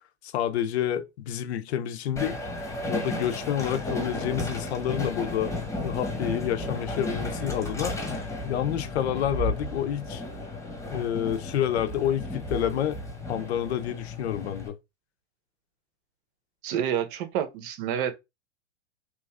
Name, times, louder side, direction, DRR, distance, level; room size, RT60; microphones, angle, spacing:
voice 1, 0.2-2.4 2.9-5.5 5.8-7.9 8.5-10.2 10.9-13.0 13.3-14.8, left 10 dB, 60° left, 0.7 m, -28 dB
Train, 2.2-14.7, left 2 dB, 10° left, 1.2 m, -33 dB
voice 2, 16.6-18.1, right 9 dB, 45° right, 0.8 m, -28 dB
3.1 x 2.4 x 3.5 m
hypercardioid pair, 125°, 36 cm